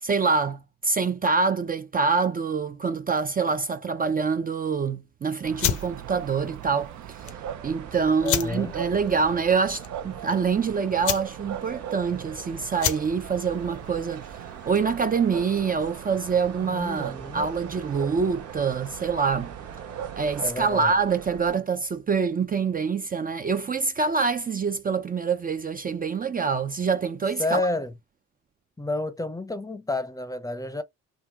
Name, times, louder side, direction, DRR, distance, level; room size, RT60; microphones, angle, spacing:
voice 1, 0.0-7.3 7.6-19.5 20.1-27.7, right 5 dB, 30° right, 0.5 m, -26 dB
sound 1, 5.4-20.5, right 10 dB, 70° right, 0.7 m, -40 dB
sound 2, 5.5-15.0, left 10 dB, 75° left, 0.9 m, -33 dB
sound 3, 7.2-21.6, right 7 dB, 55° right, 1.3 m, -43 dB
voice 2, 8.2-8.7 16.6-17.5 20.4-20.9 27.4-27.9 28.8-30.8, left 2 dB, 10° left, 0.7 m, -30 dB
3.8 x 2.7 x 4.4 m
cardioid pair, 90°, 30 cm